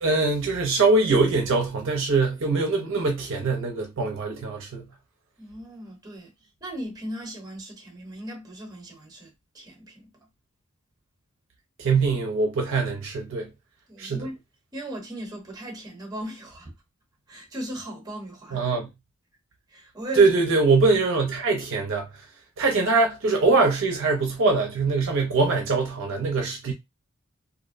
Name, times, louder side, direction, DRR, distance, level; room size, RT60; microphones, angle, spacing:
voice 1, 0.0-4.9 11.8-13.5 14.0-14.3 18.5-18.9 20.2-22.1 22.6-26.7, right 3 dB, 65° right, 0.6 m, -22 dB
voice 2, 5.4-10.1 13.9-14.4 14.7-16.7 17.3-18.6 19.7-20.3, right 1 dB, 20° right, 0.9 m, -37 dB
2.5 x 2.0 x 2.5 m
head